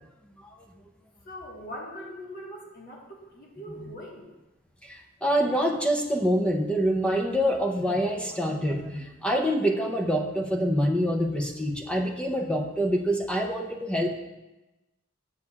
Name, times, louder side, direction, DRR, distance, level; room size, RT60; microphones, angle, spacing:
voice 1, 1.2-4.3, equal, 50° left, -2 dB, 1.4 m, -41 dB
voice 2, 4.8-14.2, equal, 5° left, 1 dB, 0.5 m, -26 dB
8.2 x 6.9 x 2.3 m, 1.0 s
head